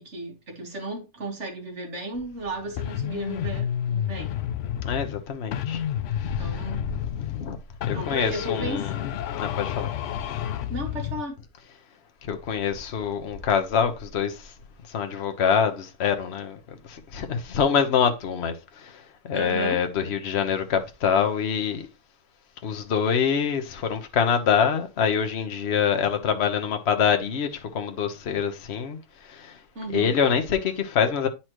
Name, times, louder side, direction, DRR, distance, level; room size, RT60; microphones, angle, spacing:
voice 1, 0.0-4.4 6.4-6.9 7.9-8.9 10.7-11.4 19.3-19.8 29.8-30.2, right 2 dB, 50° right, 1.9 m, -34 dB
sound 1, 2.8-5.2 5.5-7.5 7.8-11.2, left 10 dB, 65° left, 0.8 m, -30 dB
voice 2, 4.8-5.8 6.1-6.5 7.2-7.6 7.8-9.1 9.4-9.9 12.2-14.5 14.9-21.9 22.6-29.6 29.9-31.3, left 7 dB, 50° left, 1.1 m, -25 dB
9.5 x 4.3 x 3.0 m
omnidirectional pair, 1.6 m